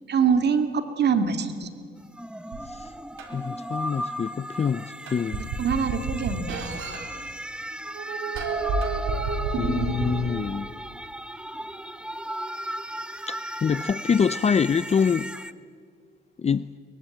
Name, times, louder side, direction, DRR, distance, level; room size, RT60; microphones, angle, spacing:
voice 1, 0.1-1.7 5.4-6.6, right 6 dB, 60° right, 2.2 m, -24 dB
sound 1, 2.0-15.5, right 1 dB, 5° right, 1.0 m, -36 dB
sound 2, 2.5-2.6 3.2-3.3 4.6-4.7 5.1-7.0 7.9-10.5, right 3 dB, 90° right, 3.9 m, -29 dB
voice 2, 3.3-5.4 9.6-10.7 13.3-15.3 16.4-16.7, left 6 dB, 30° left, 0.6 m, -25 dB
22.5 x 22.0 x 9.0 m
cardioid pair, 90°, 20 cm